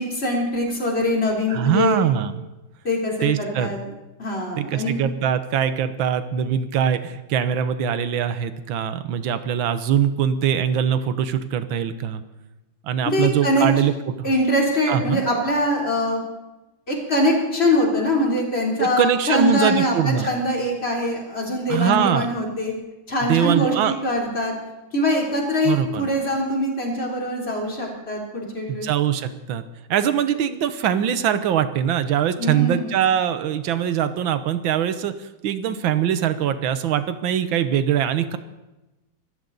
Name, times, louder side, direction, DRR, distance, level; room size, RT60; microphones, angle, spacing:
voice 1, 0.0-2.0 2.8-3.8 4.2-5.0 13.0-13.7 14.2-16.2 16.9-22.7 23.1-24.5 24.9-28.9 32.4-32.9, left 1 dB, 30° left, -1 dB, 3.6 m, -23 dB
voice 2, 1.5-2.4 3.2-3.8 4.6-12.2 12.8-13.9 14.2-14.3 14.9-15.2 18.8-20.3 21.7-22.3 23.3-24.0 25.6-26.1 28.7-29.6 29.9-38.4, right 9 dB, 85° right, 11 dB, 1.7 m, -22 dB
25.0 x 14.0 x 4.0 m, 1.0 s
omnidirectional pair, 2.1 m